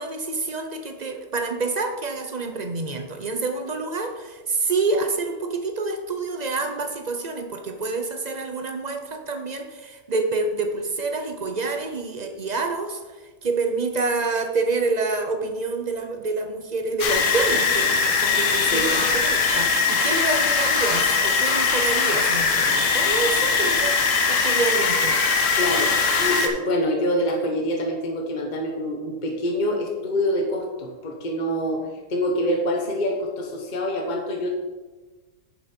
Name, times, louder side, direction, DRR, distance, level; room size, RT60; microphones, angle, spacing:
voice 1, 0.0-13.0 13.4-24.0 24.3-25.2, right 3 dB, 50° right, 6 dB, 0.5 m, -27 dB
sound 1, 17.0-26.5, left 5 dB, 55° left, 1.2 m, -21 dB
voice 2, 18.7-19.1 25.6-31.8 32.1-34.5, equal, 35° left, 1 dB, 1.0 m, -26 dB
8.7 x 7.2 x 4.4 m, 1.3 s
omnidirectional pair, 1.7 m